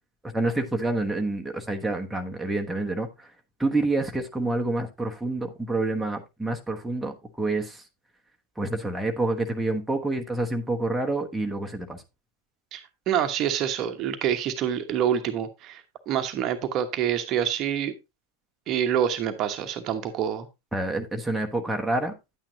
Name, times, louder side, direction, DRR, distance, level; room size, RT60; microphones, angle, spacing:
voice 1, 0.2-3.3 3.6-7.8 8.6-12.0 20.7-22.1, right 2 dB, 5° right, 1.1 m, -28 dB
voice 2, 12.7-17.9 18.7-20.5, right 9 dB, 35° right, 1.0 m, -27 dB
10.0 x 8.8 x 2.8 m
figure-of-eight pair, 90°, 0 cm